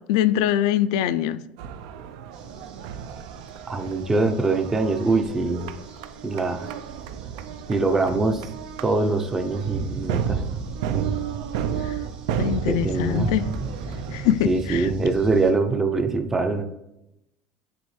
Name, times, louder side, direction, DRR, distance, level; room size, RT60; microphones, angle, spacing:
voice 1, 0.1-1.4 11.8-11.9 12.4-13.4 14.1-14.9, left 11 dB, 80° left, 0.4 m, -23 dB
sound 1, 1.6-14.3, right 8 dB, 80° right, 0.4 m, -33 dB
sound 2, 2.3-15.5, right 3 dB, 35° right, 0.8 m, -38 dB
voice 2, 3.7-5.7 6.2-6.7 7.7-8.5 8.8-10.4 10.9-11.2 12.7-13.3 14.4-16.6, right 3 dB, 10° right, 0.5 m, -23 dB
9.3 x 3.4 x 3.2 m
cardioid pair, 170°, 3 cm